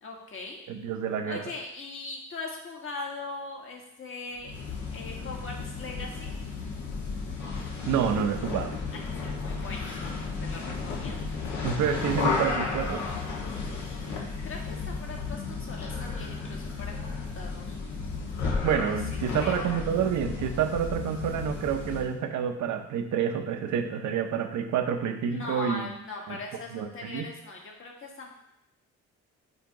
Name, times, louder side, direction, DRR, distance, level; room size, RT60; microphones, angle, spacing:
voice 1, 0.0-0.6 1.2-4.5 4.9-6.3 8.9-11.1 14.4-17.8 18.8-19.6 25.3-28.3, left 3 dB, 45° left, -1 dB, 1.6 m, -40 dB
voice 2, 0.7-1.4 7.9-8.8 11.6-13.0 18.6-25.9 26.3-26.4 26.7-27.3, right 8 dB, 75° right, 6 dB, 0.8 m, -28 dB
sound 1, 4.4-22.1, left 4 dB, 70° left, 1.4 m, -33 dB
7.9 x 2.9 x 4.7 m, 0.80 s
cardioid pair, 90°, 30 cm